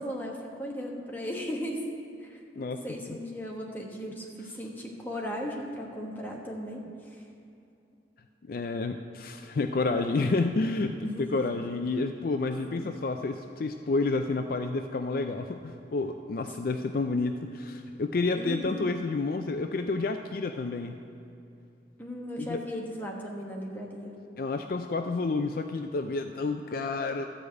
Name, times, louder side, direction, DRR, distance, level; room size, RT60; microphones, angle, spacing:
voice 1, 0.0-1.9 2.2-7.2 11.0-11.6 12.7-12.9 16.7-16.9 18.3-19.0 22.0-24.2, equal, 10° left, -1 dB, 1.3 m, -37 dB
voice 2, 8.5-20.9 22.4-22.6 24.4-27.3, left 3 dB, 50° left, 6 dB, 0.4 m, -30 dB
13.0 x 5.0 x 8.0 m, 2.7 s
head